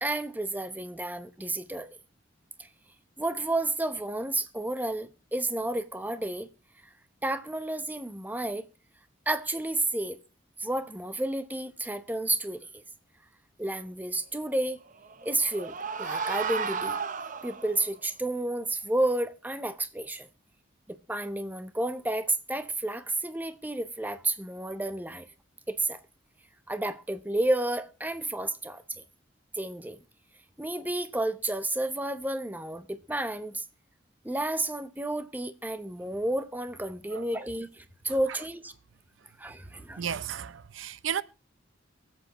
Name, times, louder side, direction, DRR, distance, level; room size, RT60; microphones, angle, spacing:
voice 1, 0.0-2.0 2.6-2.7 3.2-6.5 7.2-8.7 9.3-10.2 10.6-12.8 13.6-14.8 15.2-17.0 17.4-20.3 20.9-25.3 25.7-26.0 26.7-29.0 29.6-30.0 30.6-33.6 34.2-38.7 39.4-40.1, right 2 dB, 10° right, 0.8 m, -31 dB
sound 1, 14.9-17.9, right 5 dB, 40° right, 0.7 m, -33 dB
voice 2, 40.0-41.2, right 8 dB, 85° right, 0.6 m, -34 dB
23.5 x 8.0 x 3.0 m
head